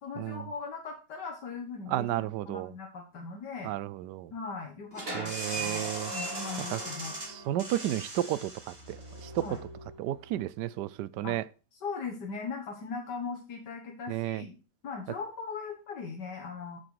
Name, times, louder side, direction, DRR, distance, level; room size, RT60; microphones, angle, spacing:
voice 1, 0.0-3.7 4.3-7.2 9.4-9.6 11.2-11.4 11.7-14.6 14.8-16.8, left 5 dB, 90° left, 2.2 m, -39 dB
voice 2, 1.9-2.7 3.6-4.3 5.1-6.1 6.7-6.8 7.2-8.5 8.9-9.4 10.0-11.4 14.1-14.4, right 13 dB, 85° right, 1.2 m, -32 dB
sound 1, 4.9-10.4, right 2 dB, 35° right, 2.9 m, -38 dB
8.9 x 7.1 x 4.8 m
omnidirectional pair, 1.8 m